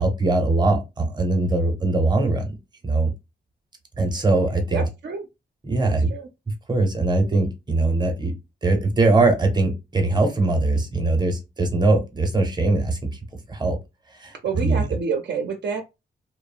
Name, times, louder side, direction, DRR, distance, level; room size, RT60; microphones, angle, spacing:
voice 1, 0.0-2.5 2.8-3.1 4.0-4.8 5.6-6.1 6.7-8.3 8.6-13.0 13.5-13.8 14.1-14.8, right 2 dB, 25° right, 0.7 m, -21 dB
voice 2, 4.7-5.2 5.8-6.3 14.4-15.8, right 5 dB, 70° right, 0.5 m, -28 dB
2.8 x 2.0 x 2.4 m
wide cardioid pair, 115°, 19 cm